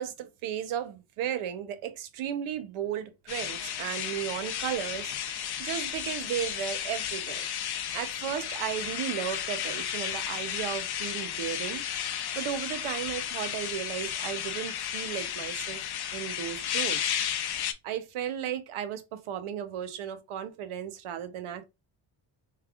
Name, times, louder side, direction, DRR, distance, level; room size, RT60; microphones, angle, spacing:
voice 1, 0.0-7.5 7.9-11.8 12.4-15.8 16.1-17.2 17.8-21.7, right 10 dB, 85° right, 0.7 m, -35 dB
sound 1, 3.3-17.7, left 9 dB, 55° left, 0.6 m, -33 dB
3.3 x 2.4 x 3.4 m
cardioid pair, 110°, 48 cm